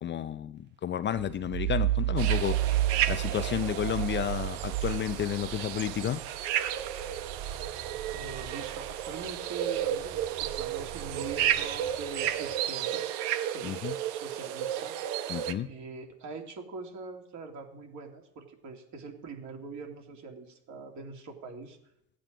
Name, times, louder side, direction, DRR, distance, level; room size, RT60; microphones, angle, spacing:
voice 1, 0.0-2.6 3.1-6.2 13.6-13.9 15.3-15.7, left 10 dB, 30° left, 11 dB, 0.5 m, -31 dB
sound 1, 1.1-9.4 9.8-12.4, right 14 dB, 30° right, 0.4 m, -33 dB
sound 2, 2.2-15.5, right 10 dB, 70° right, 1.0 m, -33 dB
voice 2, 8.1-13.1 13.5-13.7 14.1-14.9 15.6-21.8, right 4 dB, 50° right, 2 dB, 2.7 m, -43 dB
15.5 x 9.2 x 5.1 m, 0.77 s
supercardioid pair, 95°, 38 cm